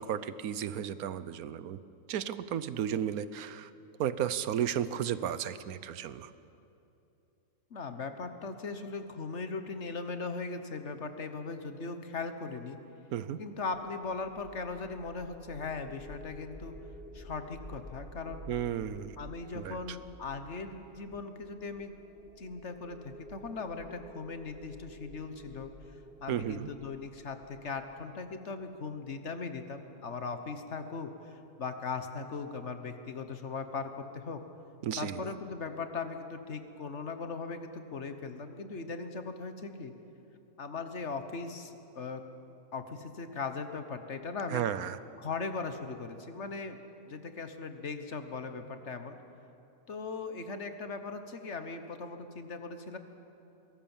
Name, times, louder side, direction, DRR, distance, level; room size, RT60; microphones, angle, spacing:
voice 1, 0.0-1.8 2.1-3.7 4.0-6.3 13.1-13.4 18.5-19.2 19.5-20.0 26.3-26.7 34.8-35.3 44.5-45.0, right 9 dB, 80° right, 15 dB, 1.2 m, -34 dB
voice 2, 7.7-12.8 13.4-16.7 17.1-18.4 19.2-22.0 22.4-25.7 26.2-34.4 35.0-39.9 40.6-42.3 42.7-44.6 45.2-46.8 47.1-49.2 49.9-53.0, left 4 dB, 50° left, 8 dB, 1.5 m, -39 dB
sound 1, 13.7-28.8, equal, 5° right, 1.7 m, -51 dB
22.5 x 18.0 x 7.2 m, 2.8 s
omnidirectional pair, 1.5 m